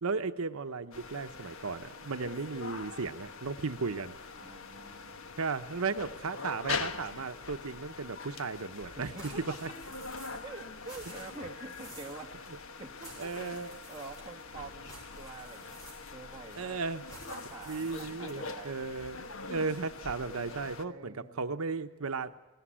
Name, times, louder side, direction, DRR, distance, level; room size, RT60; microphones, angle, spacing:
voice 1, 0.0-4.2 5.4-9.3 9.6-9.7 13.2-13.7 16.6-17.0 17.7-22.3, right 4 dB, 85° right, 9 dB, 0.8 m, -35 dB
sound 1, 0.9-20.8, left 4 dB, 75° left, 1.2 m, -43 dB
voice 2, 4.4-5.3 8.8-9.6 10.4-12.3 12.8-13.3 13.9-15.8 16.1-16.8 17.3-18.8 20.8-21.5, right 3 dB, 25° right, 0 dB, 1.9 m, -47 dB
sound 2, 9.2-10.5 10.8-12.2 13.0-14.4 14.8-16.3 17.0-18.5, right 1 dB, 15° left, 7.0 m, -51 dB
19.5 x 17.5 x 9.9 m, 1.2 s
head